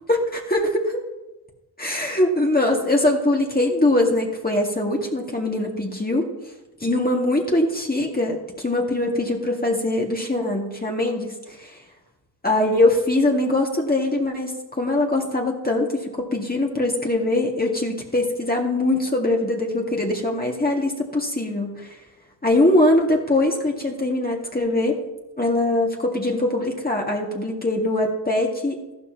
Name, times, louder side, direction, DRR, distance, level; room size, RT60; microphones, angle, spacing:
voice 1, 0.1-1.0 1.8-6.3 6.8-11.3 11.6-11.7 12.4-21.9 22.4-25.0 25.4-28.9, left 1 dB, 20° left, -1 dB, 2.1 m, -22 dB
13.5 x 12.0 x 3.0 m, 1.0 s
cardioid pair, 55°, 43 cm